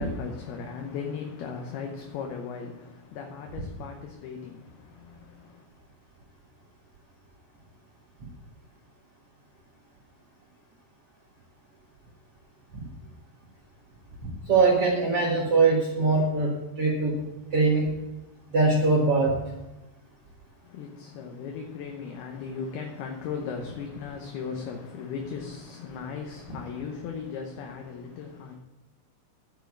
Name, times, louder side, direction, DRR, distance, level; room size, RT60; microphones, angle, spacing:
voice 1, 0.0-5.7 20.6-28.6, left 6 dB, 75° left, 2.7 m, -37 dB
voice 2, 14.2-17.2 17.5-17.9 18.5-19.4, right 3 dB, 70° right, 1.4 m, -22 dB
10.0 x 5.5 x 8.1 m
omnidirectional pair, 5.0 m